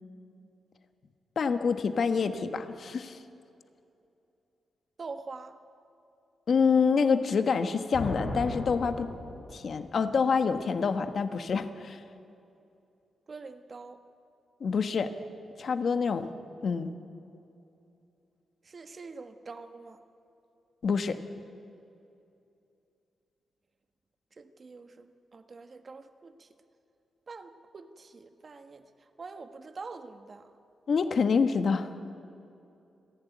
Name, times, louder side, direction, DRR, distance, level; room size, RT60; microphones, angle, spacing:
voice 1, 1.4-3.2 6.5-9.1 9.5-12.0 14.6-15.1 15.6-16.3 16.6-16.9 20.8-21.2 30.9-31.9, left 5 dB, 60° left, 9 dB, 1.3 m, -27 dB
voice 2, 5.0-5.6 13.3-14.0 18.6-20.0 24.3-26.5 27.3-30.5, right 4 dB, 45° right, 8 dB, 1.3 m, -45 dB
sound 1, 7.9-9.9, left 2 dB, 75° left, 4.9 m, -36 dB
29.5 x 11.5 x 9.4 m, 2.7 s
cardioid pair, 85°, 0 cm